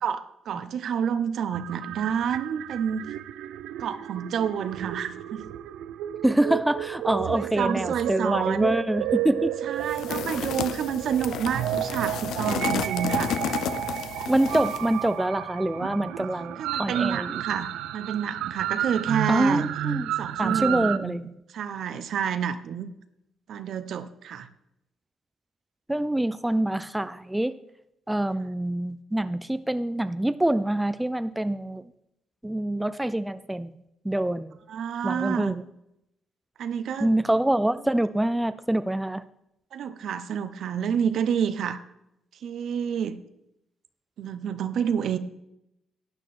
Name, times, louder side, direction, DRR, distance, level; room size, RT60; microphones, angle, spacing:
voice 1, 0.0-3.1 3.8-5.4 7.3-8.7 9.6-13.3 16.6-19.7 20.2-21.1 21.5-22.9 23.5-24.5 34.7-35.5 36.6-37.1 39.7-41.8 42.4-43.2 44.2-45.2, right 8 dB, 70° right, 11 dB, 0.8 m, -29 dB
sound 1, 1.4-21.0, right 12 dB, 85° right, 0.5 m, -32 dB
voice 2, 6.2-9.5 14.3-17.4 19.3-20.1 20.4-21.3 25.9-27.5 28.1-31.8 32.4-33.7 34.0-34.6 35.0-35.6 37.0-39.2, right 1 dB, 10° right, 13 dB, 0.4 m, -25 dB
sound 2, 9.9-14.9, left 9 dB, 75° left, 0.5 m, -32 dB
12.0 x 9.0 x 4.3 m, 0.83 s
cardioid pair, 90°, 0 cm